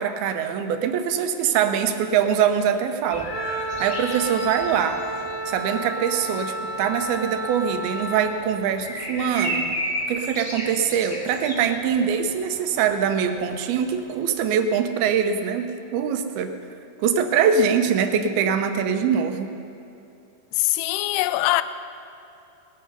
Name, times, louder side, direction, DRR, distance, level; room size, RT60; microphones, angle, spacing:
voice 1, 0.0-3.3 3.8-5.0 5.5-9.7 10.1-16.5 17.0-19.5, right 7 dB, 75° right, 2.6 m, -23 dB
sound 1, 3.1-14.2, equal, 20° left, 1.1 m, -35 dB
Wind instrument woodwind instrument, 3.3-8.5, right 1 dB, 50° right, 1.3 m, -31 dB
voice 2, 20.5-21.6, left 17 dB, 85° left, 2.4 m, -22 dB
19.0 x 12.5 x 5.4 m
omnidirectional pair, 4.9 m